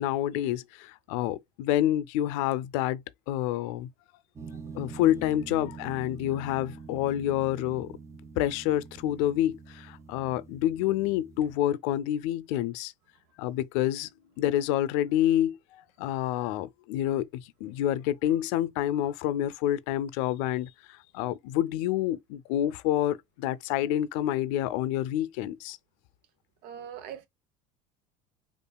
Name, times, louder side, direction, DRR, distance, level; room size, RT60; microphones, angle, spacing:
voice 1, 0.0-3.9 4.7-8.0 8.4-12.9 13.4-14.1 14.4-25.8, left 12 dB, 80° left, 0.4 m, -28 dB
sound 1, 4.4-11.6, right 5 dB, 15° right, 0.7 m, -45 dB
voice 2, 26.6-27.3, right 9 dB, 65° right, 0.9 m, -41 dB
5.4 x 2.5 x 2.2 m
supercardioid pair, 115°, 17 cm